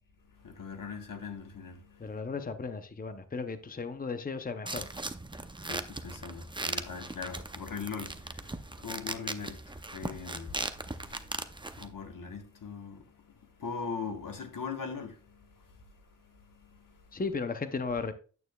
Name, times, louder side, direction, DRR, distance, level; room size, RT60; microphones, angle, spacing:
voice 1, 0.3-2.2 5.6-17.2, left 5 dB, 80° left, 1.3 m, -42 dB
voice 2, 2.0-4.8 17.1-18.1, left 4 dB, 25° left, 0.6 m, -35 dB
sound 1, 4.7-11.9, right 2 dB, 15° right, 0.6 m, -39 dB
9.3 x 8.5 x 2.3 m
wide cardioid pair, 100°, 32 cm